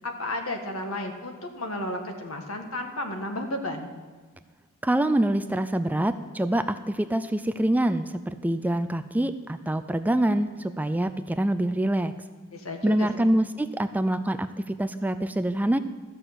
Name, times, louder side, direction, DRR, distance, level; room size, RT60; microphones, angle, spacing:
voice 1, 0.0-3.9 12.5-13.3, left 1 dB, 75° left, 4 dB, 1.7 m, -33 dB
voice 2, 4.8-12.1 12.8-15.8, right 1 dB, 10° right, 10 dB, 0.3 m, -25 dB
13.5 x 6.4 x 7.7 m, 1.4 s
head